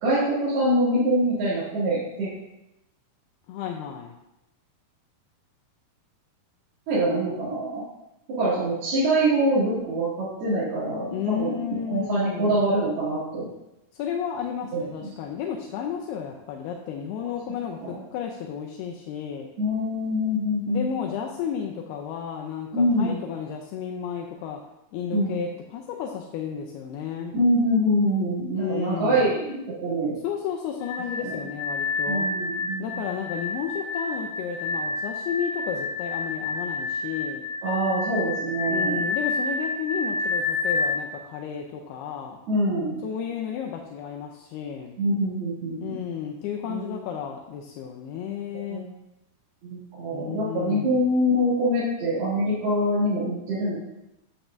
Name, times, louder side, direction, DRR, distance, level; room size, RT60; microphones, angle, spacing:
voice 1, 0.0-2.3 6.9-7.8 8.4-13.5 14.7-15.1 17.2-17.3 17.8-18.0 19.6-20.8 22.7-23.2 25.1-25.4 27.3-29.5 29.8-30.2 31.2-31.4 32.1-33.0 37.6-39.0 42.5-43.0 45.0-46.0 46.7-47.0 48.7-48.9 49.6-53.8, equal, 75° right, -13 dB, 4.5 m, -24 dB
voice 2, 3.5-4.1 11.1-12.6 13.9-19.5 20.7-24.6 24.9-27.4 28.5-29.4 30.2-32.3 32.8-37.4 38.7-42.4 43.0-44.9 45.8-48.8 50.1-51.0, left 8 dB, 85° left, 0 dB, 2.6 m, -32 dB
sound 1, 30.8-41.0, left 3 dB, 50° left, 1.7 m, -29 dB
9.6 x 8.0 x 2.6 m, 0.90 s
omnidirectional pair, 4.5 m